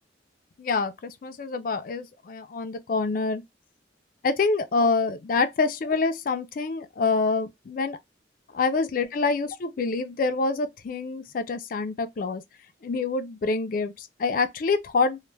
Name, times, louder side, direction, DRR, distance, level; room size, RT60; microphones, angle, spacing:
voice 1, 0.6-3.4 4.2-8.0 8.5-12.4 12.8-15.2, left 4 dB, 45° left, 0.3 m, -26 dB
2.1 x 2.1 x 3.1 m
head